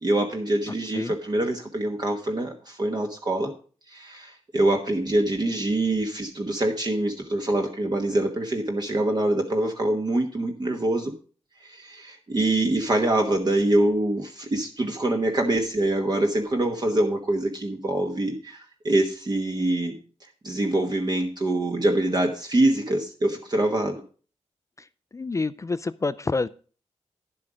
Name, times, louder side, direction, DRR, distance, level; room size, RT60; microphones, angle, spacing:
voice 1, 0.0-3.5 3.9-11.1 11.6-20.0 20.4-24.0, right 1 dB, 35° right, 3 dB, 1.2 m, -25 dB
voice 2, 25.1-26.5, left 3 dB, 25° left, 15 dB, 0.4 m, -27 dB
10.5 x 7.6 x 5.0 m, 0.39 s
wide cardioid pair, 135°, 12 cm